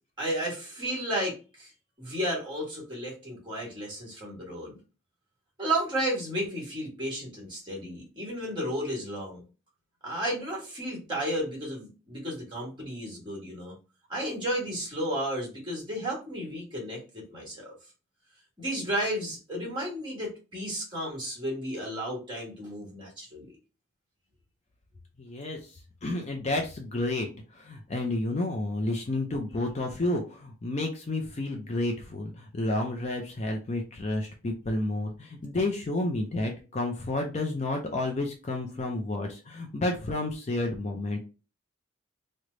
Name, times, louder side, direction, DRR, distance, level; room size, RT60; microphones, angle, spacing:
voice 1, 0.2-1.7 2.0-4.8 5.6-9.4 10.0-13.7 14.1-17.7 18.6-23.5, right 1 dB, 20° right, -3 dB, 1.4 m, -33 dB
voice 2, 25.2-41.2, left 2 dB, 30° left, 3 dB, 0.4 m, -31 dB
3.2 x 2.1 x 3.7 m, 0.33 s
head